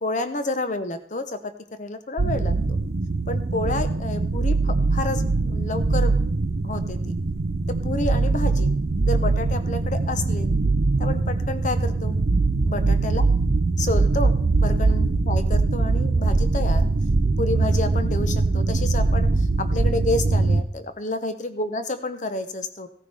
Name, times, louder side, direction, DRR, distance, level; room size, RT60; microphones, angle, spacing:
voice 1, 0.0-2.6 3.3-6.2 6.6-7.1 7.7-8.7 9.1-10.5 11.0-12.2 12.6-13.2 13.8-16.9 17.4-22.9, left 2 dB, 40° left, 9 dB, 0.9 m, -29 dB
sound 1, 2.2-20.6, right 3 dB, 55° right, 0.6 m, -22 dB
16.5 x 9.6 x 3.5 m, 0.62 s
head